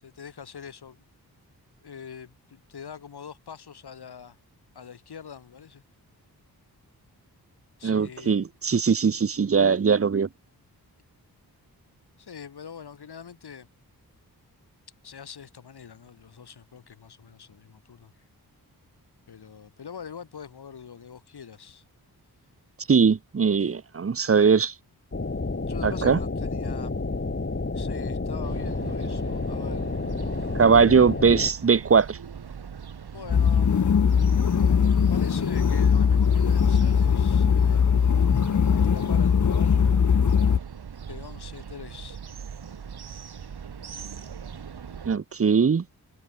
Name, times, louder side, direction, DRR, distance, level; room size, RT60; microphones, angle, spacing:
voice 1, 0.0-1.1 1.8-4.4 4.7-5.8 7.8-8.4 12.2-13.7 15.0-18.1 19.3-21.8 23.5-23.8 25.7-26.9 27.7-29.9 33.1-38.0 38.6-40.2 41.1-42.2, left 7 dB, 75° left, 7.9 m, -44 dB
voice 2, 7.8-10.3 22.9-24.7 25.8-26.2 30.5-32.2 45.1-45.8, right 6 dB, 35° right, 0.9 m, -20 dB
sound 1, 25.1-31.5, left 3 dB, 30° left, 5.2 m, -30 dB
sound 2, 28.4-45.2, right 7 dB, 75° right, 7.3 m, -41 dB
sound 3, 33.3-40.6, left 7 dB, 50° left, 1.2 m, -20 dB
cardioid pair, 65°, 39 cm